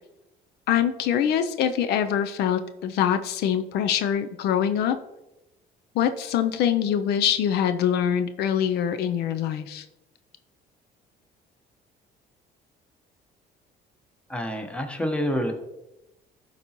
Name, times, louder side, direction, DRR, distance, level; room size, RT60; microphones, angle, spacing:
voice 1, 0.7-5.0 5.9-9.8, left 9 dB, 75° left, 9 dB, 0.5 m, -24 dB
voice 2, 14.3-15.5, equal, 5° left, 4 dB, 1.1 m, -27 dB
11.5 x 4.0 x 2.9 m, 0.95 s
cardioid pair, 110°, 17 cm